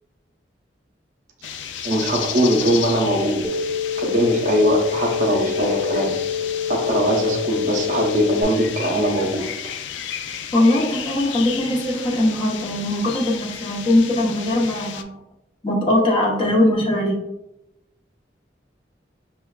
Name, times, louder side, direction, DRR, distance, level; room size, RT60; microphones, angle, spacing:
sound 1, 1.4-15.0, left 9 dB, 85° left, 0.3 m, -33 dB
voice 1, 1.8-3.4 4.0-6.2 6.7-9.5, equal, 40° right, -1 dB, 0.6 m, -20 dB
sound 2, 3.4-8.4, left 7 dB, 10° right, 0.8 m, -26 dB
voice 2, 10.5-15.2 15.6-17.2, left 1 dB, 30° left, -3 dB, 0.7 m, -20 dB
5.5 x 2.1 x 2.3 m, 0.89 s
head